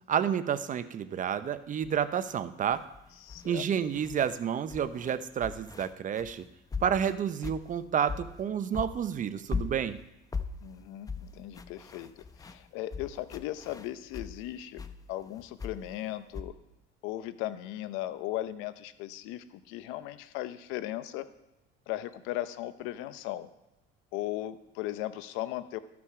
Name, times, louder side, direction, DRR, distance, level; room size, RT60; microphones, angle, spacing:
voice 1, 0.1-2.8 3.4-6.5 6.8-10.0, right 8 dB, 40° right, 13 dB, 0.7 m, -30 dB
sound 1, 1.8-2.0 2.7-4.4 4.7-8.5 8.7-14.4 14.8-16.4, left 4 dB, 15° left, 0.7 m, -39 dB
voice 2, 3.2-3.6 10.6-14.8 15.1-16.5 17.0-21.3 21.9-23.5 24.1-25.8, left 14 dB, 85° left, 12 dB, 0.8 m, -37 dB
13.5 x 6.0 x 4.8 m, 0.94 s
cardioid pair, 100°, 20 cm